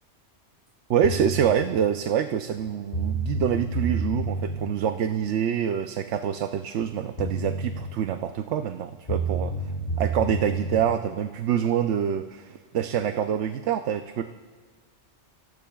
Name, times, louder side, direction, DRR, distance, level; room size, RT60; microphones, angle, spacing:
voice 1, 0.9-9.7 10.0-14.2, right 9 dB, 80° right, 7 dB, 0.9 m, -26 dB
sound 1, 1.0-1.6 2.6-2.7 2.9-4.6 6.8-6.9 7.2-7.8 9.1-10.8, right 2 dB, 55° left, 2.2 m, -29 dB
28.5 x 17.5 x 2.3 m, 1.5 s
omnidirectional pair, 1.2 m